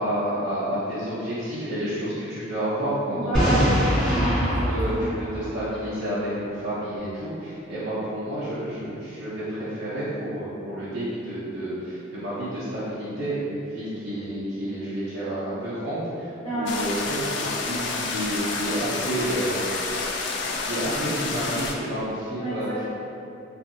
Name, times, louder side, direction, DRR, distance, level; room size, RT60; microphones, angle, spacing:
voice 1, 0.0-3.7 4.6-19.6 20.4-22.7, right 1 dB, 60° right, -12 dB, 0.7 m, -30 dB
voice 2, 3.1-5.1 16.4-16.8 22.4-22.9, right 1 dB, 35° left, -13 dB, 1.1 m, -29 dB
Boom, 3.3-6.2, equal, 5° left, 1.4 m, -24 dB
sound 1, 16.7-21.7, left 3 dB, 65° left, 0.3 m, -29 dB
2.6 x 2.5 x 2.6 m, 2.6 s
head